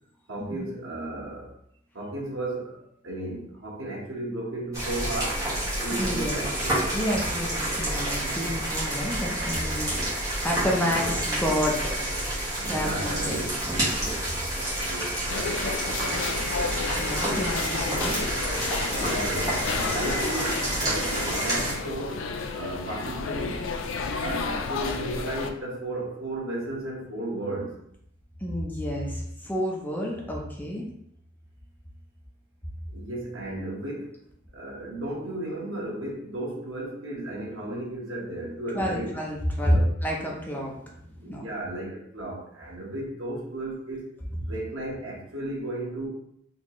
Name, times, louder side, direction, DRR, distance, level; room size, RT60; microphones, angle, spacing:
voice 1, 0.3-1.5 1.9-5.4 5.8-6.8 10.9-11.2 12.6-13.6 14.7-15.2 18.9-23.7 24.2-27.8 32.9-34.1 34.5-39.2 39.6-39.9 41.2-44.1 44.5-46.1, right 1 dB, 80° right, -3 dB, 1.3 m, -34 dB
sound 1, 4.7-21.7, right 1 dB, 15° right, 1.3 m, -29 dB
voice 2, 6.0-6.4 6.9-10.1 10.4-11.8 12.6-13.4 13.6-14.4 17.0-18.2 28.4-30.9 38.7-41.4 44.4-44.5, equal, 10° left, -2 dB, 0.6 m, -29 dB
sound 2, 15.3-25.5, left 4 dB, 80° left, 0.4 m, -31 dB
4.2 x 3.0 x 3.0 m, 0.72 s
head